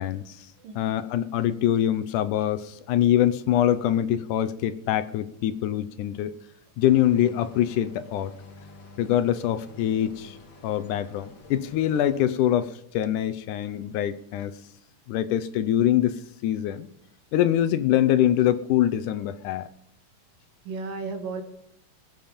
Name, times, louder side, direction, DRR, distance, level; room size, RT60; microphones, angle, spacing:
voice 1, 0.0-0.5 0.8-6.3 6.8-8.3 9.0-10.4 10.6-14.5 15.1-16.9 17.3-19.7, left 11 dB, 75° left, 11 dB, 2.1 m, -24 dB
voice 2, 0.6-0.9 17.6-17.8 20.6-21.4, right 4 dB, 80° right, 5 dB, 3.4 m, -34 dB
sound 1, 6.8-12.2, left 1 dB, 40° left, 2.1 m, -48 dB
21.0 x 7.3 x 5.1 m, 0.75 s
omnidirectional pair, 3.8 m